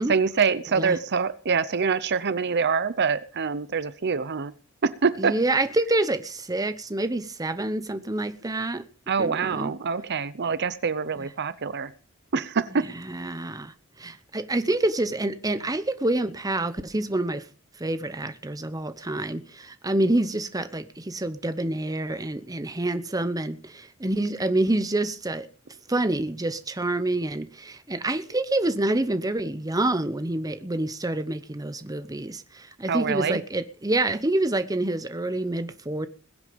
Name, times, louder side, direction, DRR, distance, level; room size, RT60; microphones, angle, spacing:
voice 1, 0.1-4.5 4.8-5.4 9.1-11.9 12.3-12.9 32.9-33.4, right 5 dB, 50° right, 0.7 m, -25 dB
voice 2, 5.2-8.8 9.2-9.7 12.9-17.4 17.8-25.5 25.9-36.1, right 2 dB, 15° right, 0.9 m, -27 dB
21.5 x 8.1 x 5.2 m
head